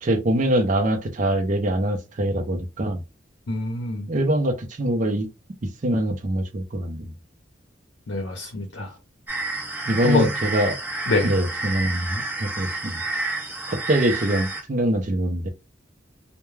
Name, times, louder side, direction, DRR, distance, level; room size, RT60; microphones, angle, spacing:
voice 1, 0.0-3.0 4.1-5.3 5.8-7.1 9.9-10.8 11.2-13.0 13.7-15.5, right 1 dB, 45° right, 0.5 m, -23 dB
voice 2, 3.5-4.1 8.1-8.9 10.0-10.3 11.1-11.3, left 3 dB, 65° left, 0.6 m, -24 dB
sound 1, 9.3-14.6, right 2 dB, 10° right, 0.8 m, -30 dB
2.2 x 2.1 x 3.1 m
head